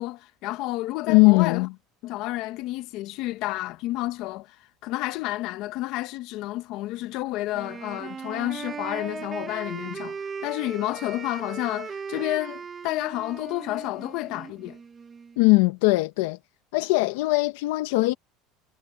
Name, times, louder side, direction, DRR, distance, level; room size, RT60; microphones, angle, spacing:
voice 1, 0.0-1.7 2.0-14.8, left 17 dB, 60° left, 1.0 m, -30 dB
voice 2, 1.1-1.7 15.4-16.4 16.7-18.1, left 24 dB, 85° left, 1.0 m, -20 dB
Wind instrument woodwind instrument, 7.5-15.4, right 6 dB, 25° right, 1.2 m, -38 dB
cardioid pair, 145°, 0 cm